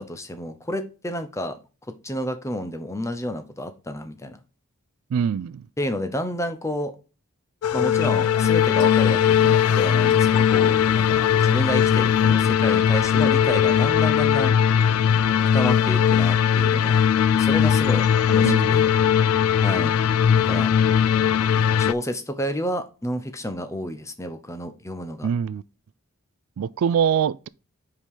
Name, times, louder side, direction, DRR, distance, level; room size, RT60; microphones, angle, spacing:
voice 1, 0.0-1.6 2.0-4.4 5.8-6.9 7.7-14.6 15.5-17.0 17.3-18.9 19.6-20.0 20.4-20.7 21.7-25.3, equal, 15° left, 0.7 m, -30 dB
voice 2, 5.1-5.7 18.4-18.7 25.2-25.6 26.6-27.5, right 7 dB, 75° right, 0.3 m, -23 dB
sound 1, 7.6-21.9, left 8 dB, 75° left, 0.4 m, -19 dB
5.2 x 4.9 x 5.4 m
head